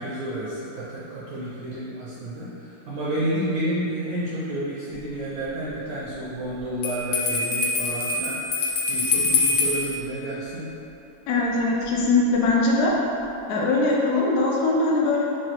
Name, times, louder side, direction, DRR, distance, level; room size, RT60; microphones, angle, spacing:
voice 1, 0.0-10.7, right 1 dB, 65° right, -8 dB, 1.1 m, -30 dB
Bell, 6.8-9.9, left 3 dB, 85° left, 0.5 m, -24 dB
voice 2, 11.3-12.9 13.5-15.2, left 3 dB, 70° left, -3 dB, 1.0 m, -21 dB
4.7 x 2.7 x 2.9 m, 2.9 s
omnidirectional pair, 1.9 m